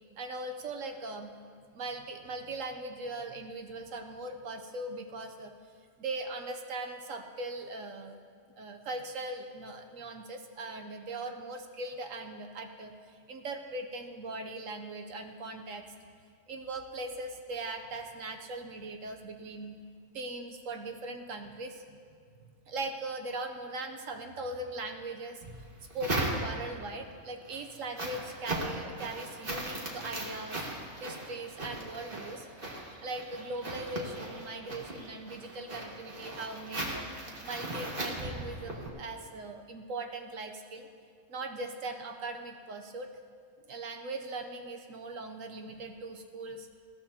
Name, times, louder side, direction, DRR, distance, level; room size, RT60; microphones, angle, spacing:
voice 1, 0.2-1.3 1.7-5.5 6.0-8.2 8.6-15.8 16.5-19.8 20.1-21.8 22.1-22.2 22.7-25.4 25.9-30.6 31.0-32.5 33.0-37.1 37.4-40.9 41.3-43.1 43.7-46.7, right 2 dB, 65° right, 5 dB, 1.1 m, -40 dB
sound 1, 25.4-26.8 27.3-38.9, right 1 dB, 40° right, 1.9 m, -38 dB
20.0 x 14.5 x 2.8 m, 2.1 s
omnidirectional pair, 1.5 m